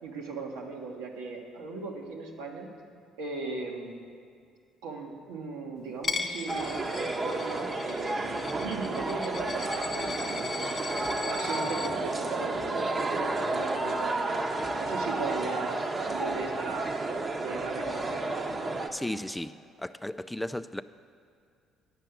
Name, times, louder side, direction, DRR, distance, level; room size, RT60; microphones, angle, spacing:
voice 1, 0.0-2.7 3.2-4.0 4.8-10.7 11.3-14.4 14.8-16.9 17.4-18.3, right 3 dB, 85° right, 0 dB, 1.4 m, -38 dB
Coin (dropping), 6.0-11.9, left 4 dB, 40° left, 0.9 m, -38 dB
sound 1, 6.5-18.9, right 2 dB, 35° right, 1.0 m, -31 dB
voice 2, 18.9-19.5 19.8-20.8, left 1 dB, 5° left, 13 dB, 0.3 m, -34 dB
10.5 x 5.6 x 7.8 m, 2.3 s
supercardioid pair, 65°, 0 cm